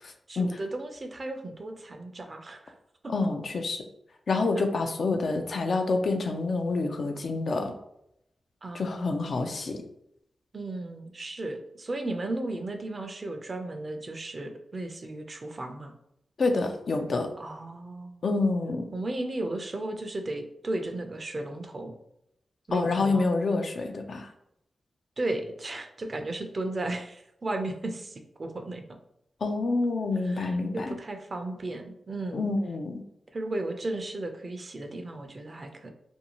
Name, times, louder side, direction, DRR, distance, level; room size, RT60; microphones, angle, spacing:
voice 1, 0.3-2.7 3.0-3.1 8.6-9.2 10.5-15.9 17.4-18.2 18.9-21.9 22.7-23.3 25.2-29.0 30.2-32.5 33.3-35.9, right 2 dB, 50° right, 5 dB, 0.5 m, -35 dB
voice 2, 3.1-3.8 4.3-7.7 8.7-9.8 16.4-17.3 18.2-18.9 22.7-24.3 29.4-31.0 32.3-33.0, left 3 dB, 65° left, 5 dB, 0.4 m, -27 dB
2.6 x 2.3 x 2.9 m, 0.78 s
cardioid pair, 45°, 0 cm